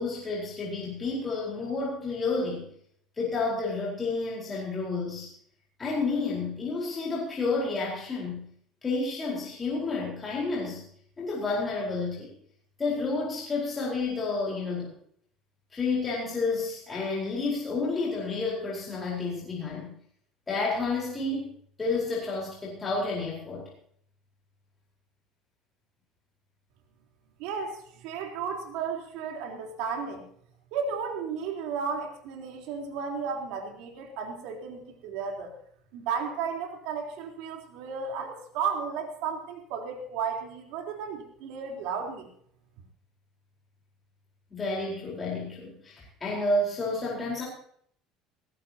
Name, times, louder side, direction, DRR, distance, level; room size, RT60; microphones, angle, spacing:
voice 1, 0.0-2.7 3.2-5.3 5.8-8.4 8.8-10.8 11.2-12.3 12.8-14.9 15.7-19.9 20.5-23.7 44.5-47.4, left 3 dB, 20° left, -4 dB, 4.5 m, -30 dB
voice 2, 27.4-30.2 30.7-35.5 35.9-42.3, right 6 dB, 75° right, 1 dB, 4.0 m, -34 dB
19.5 x 16.0 x 3.0 m, 0.64 s
cardioid pair, 160°, 0 cm